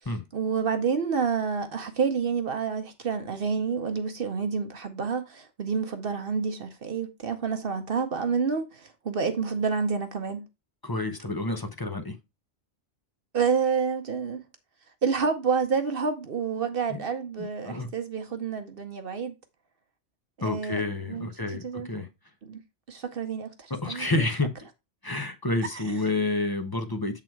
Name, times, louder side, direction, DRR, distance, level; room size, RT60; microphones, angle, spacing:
voice 1, 0.3-10.5 13.3-14.4 15.0-19.4 20.4-20.8 21.1-21.3 21.6-21.9 22.4-22.6 22.9-24.0, right 5 dB, 55° right, 1.0 m, -28 dB
voice 2, 10.8-12.2 16.9-17.0 17.4-17.9 20.4-22.1 23.7-24.6 25.0-27.2, left 2 dB, 25° left, 0.6 m, -29 dB
7.5 x 3.9 x 4.5 m
omnidirectional pair, 1.2 m